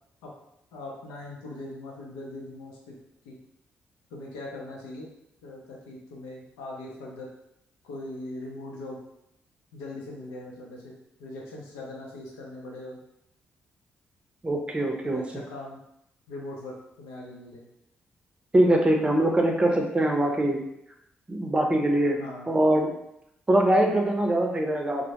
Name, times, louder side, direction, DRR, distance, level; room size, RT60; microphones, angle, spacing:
voice 1, 0.7-3.0 3.2-3.4 4.1-5.1 5.4-7.3 7.8-9.0 9.7-10.9 11.2-13.0 15.0-15.8 16.3-17.6 22.2-22.5, left 2 dB, 85° left, -2 dB, 0.6 m, -40 dB
voice 2, 14.4-15.2 18.5-20.6 21.3-22.2 22.5-22.9 23.5-25.1, right 1 dB, 25° right, 2 dB, 0.6 m, -23 dB
2.1 x 2.0 x 2.9 m, 0.80 s
hypercardioid pair, 45°, 5 cm